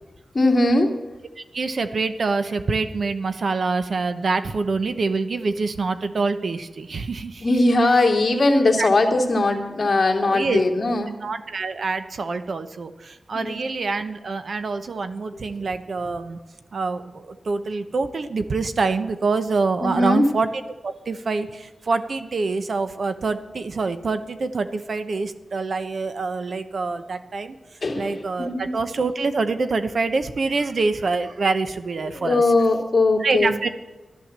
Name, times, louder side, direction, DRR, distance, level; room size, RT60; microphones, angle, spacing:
voice 1, 0.3-0.9 7.4-11.2 13.3-13.6 19.8-20.2 27.8-28.7 32.0-33.5, left 2 dB, 40° left, 2 dB, 2.4 m, -20 dB
voice 2, 1.4-7.5 8.8-8.9 10.2-10.6 11.2-16.4 16.7-20.5 20.8-27.6 27.9-32.4 33.2-33.7, right 4 dB, 60° right, 10 dB, 0.9 m, -25 dB
12.5 x 12.0 x 7.5 m, 1.1 s
wide cardioid pair, 85°, 0 cm